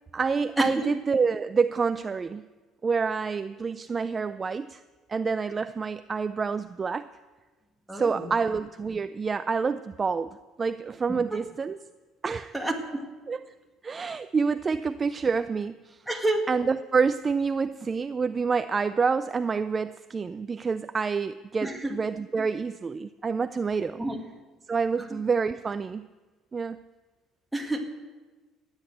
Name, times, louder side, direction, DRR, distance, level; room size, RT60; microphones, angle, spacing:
voice 1, 0.1-2.5 2.8-4.8 5.1-7.1 7.9-10.3 10.6-11.8 12.2-12.5 13.3-13.4 13.8-16.0 16.5-24.0 24.7-26.1 26.5-26.8, right 5 dB, 25° right, 12 dB, 0.3 m, -27 dB
voice 2, 7.9-8.3 11.3-11.4 12.5-13.0 16.1-16.5 21.6-22.0 24.0-24.2 27.5-27.8, right 1 dB, 5° right, 1 dB, 2.0 m, -28 dB
14.5 x 9.7 x 7.8 m, 1.3 s
cardioid pair, 125°, 0 cm